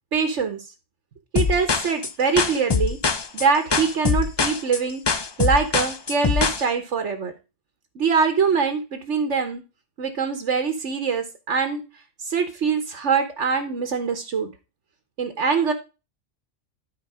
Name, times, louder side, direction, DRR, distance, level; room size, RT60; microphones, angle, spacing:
voice 1, 0.1-0.7 1.3-3.0 3.3-7.3 7.9-9.6 10.0-11.8 12.2-14.5 15.2-15.7, right 5 dB, 65° right, 6 dB, 1.4 m, -23 dB
sound 1, 1.4-6.6, left 5 dB, 35° left, 0.4 m, -23 dB
12.0 x 4.8 x 4.8 m, 0.29 s
omnidirectional pair, 1.3 m